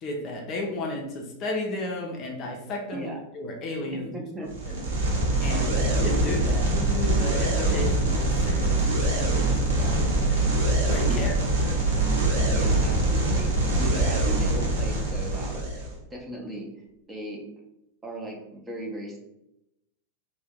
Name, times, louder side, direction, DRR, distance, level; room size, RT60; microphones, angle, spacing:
voice 1, 0.0-4.1 4.7-5.1 5.4-10.4 10.9-11.8, left 2 dB, 35° left, 1 dB, 0.5 m, -34 dB
voice 2, 4.1-5.0 5.5-6.1 11.1-11.3 12.5-16.7 17.1-17.4 18.0-19.2, right 1 dB, 15° right, -1 dB, 0.7 m, -37 dB
sound 1, 4.5-15.9, right 2 dB, 60° right, 0.9 m, -24 dB
2.7 x 2.1 x 3.5 m, 0.86 s
figure-of-eight pair, 90°, 0 cm